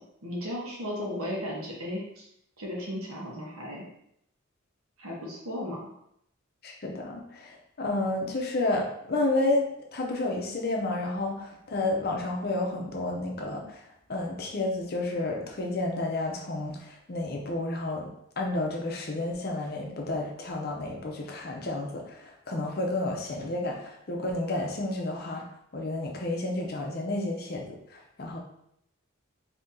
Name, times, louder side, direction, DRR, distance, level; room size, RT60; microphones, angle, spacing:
voice 1, 0.2-2.3 2.6-3.8 5.0-5.8, left 1 dB, 85° right, -3 dB, 1.1 m, -35 dB
voice 2, 6.6-9.7 9.9-13.8 14.1-18.1 18.4-25.4 25.7-27.6 27.9-28.4, left 2 dB, 45° left, 0 dB, 0.6 m, -31 dB
2.8 x 2.7 x 3.6 m, 0.75 s
head